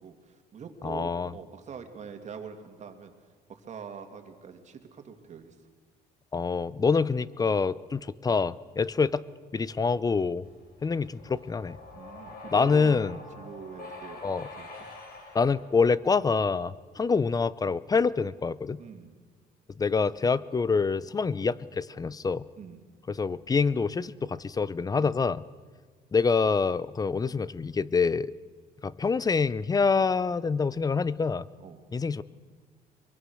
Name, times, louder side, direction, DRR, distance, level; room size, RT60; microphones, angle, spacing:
voice 1, 0.0-3.1 3.5-5.6 11.9-13.0 13.4-14.2 14.5-14.7 18.8-19.1 22.6-22.8 31.6-31.8, right 6 dB, 45° right, 5 dB, 2.6 m, -44 dB
voice 2, 0.8-1.3 6.3-9.2 9.5-10.5 10.8-11.8 12.5-13.2 14.2-14.5 15.3-18.8 19.8-22.4 23.1-25.4 26.1-28.3 28.8-31.5 31.9-32.2, left 5 dB, 20° left, 19 dB, 0.6 m, -26 dB
sound 1, 10.4-16.6, left 3 dB, 60° left, 5.2 m, -46 dB
23.0 x 23.0 x 6.4 m, 1.5 s
cardioid pair, 110°, 17 cm